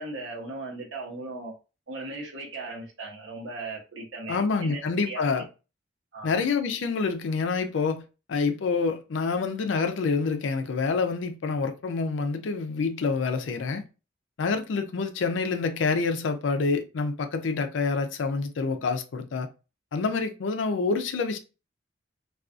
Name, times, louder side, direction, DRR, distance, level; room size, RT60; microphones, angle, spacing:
voice 1, 0.0-1.5 1.9-4.8 5.1-5.3 6.1-6.4, right 2 dB, 85° right, 0.9 m, -37 dB
voice 2, 4.3-5.4 6.2-8.0 8.3-13.8 14.4-19.5 19.9-21.4, left 4 dB, 75° left, 0.4 m, -27 dB
2.4 x 2.3 x 2.3 m
head